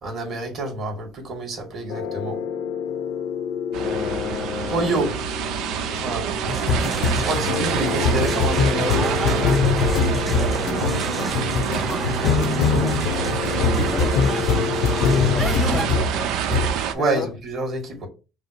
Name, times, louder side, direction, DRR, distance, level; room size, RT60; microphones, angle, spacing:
voice 1, 0.0-2.4 4.7-5.1 6.0-6.2 7.1-9.7 16.9-18.1, right 2 dB, 40° right, 2.1 m, -27 dB
sound 1, 1.9-16.2 16.5-16.8, left 4 dB, 70° left, 0.7 m, -24 dB
voice 2, 3.7-5.2 10.5-10.9 11.3-11.9 12.2-13.0 13.5-14.5 14.8-16.3 17.0-17.3, left 7 dB, 40° left, 0.5 m, -33 dB
sound 2, 3.7-16.9, right 8 dB, 65° right, 0.7 m, -27 dB
sound 3, 6.5-15.8, right 1 dB, 10° right, 0.6 m, -32 dB
5.5 x 2.0 x 4.6 m
cardioid pair, 125°, 0 cm